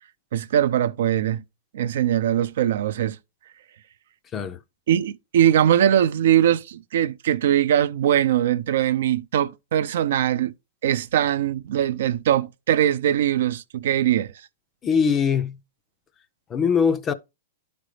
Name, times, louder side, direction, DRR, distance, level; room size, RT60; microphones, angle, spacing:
voice 1, 0.3-1.4 1.7-3.2 4.9-10.5 10.8-14.3, right 11 dB, 60° right, 0.5 m, -21 dB
voice 2, 14.8-15.6 16.5-17.1, left 6 dB, 15° left, 0.4 m, -21 dB
11.0 x 5.1 x 3.3 m
supercardioid pair, 170°, 0 cm